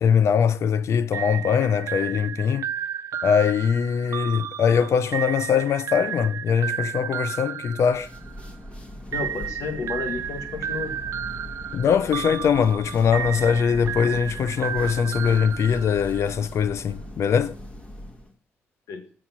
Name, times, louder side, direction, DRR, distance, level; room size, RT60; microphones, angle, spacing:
voice 1, 0.0-2.6 3.2-8.1 11.7-17.5, left 7 dB, 65° left, 0.7 m, -22 dB
sound 1, 1.1-8.6 9.1-16.4, right 9 dB, 65° right, 0.4 m, -33 dB
sound 2, 7.8-18.3, left 1 dB, 20° left, 1.8 m, -40 dB
voice 2, 9.1-11.0 18.9-19.0, left 4 dB, 80° left, 1.7 m, -31 dB
7.6 x 6.4 x 5.8 m
supercardioid pair, 65°, 5 cm